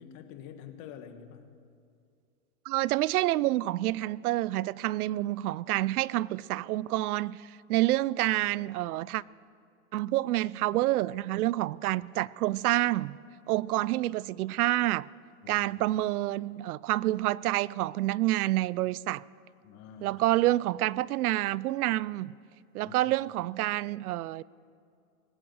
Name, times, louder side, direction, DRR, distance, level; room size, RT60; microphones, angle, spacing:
voice 1, 0.0-1.5 15.4-15.7 19.6-20.1 22.8-23.0, left 8 dB, 40° left, 1.5 m, -47 dB
voice 2, 2.7-9.2 9.9-13.2 13.5-15.1 15.5-19.2 20.0-22.3 22.7-24.4, right 16 dB, 80° right, 0.5 m, -28 dB
19.5 x 8.8 x 8.0 m
hypercardioid pair, 135°, 44 cm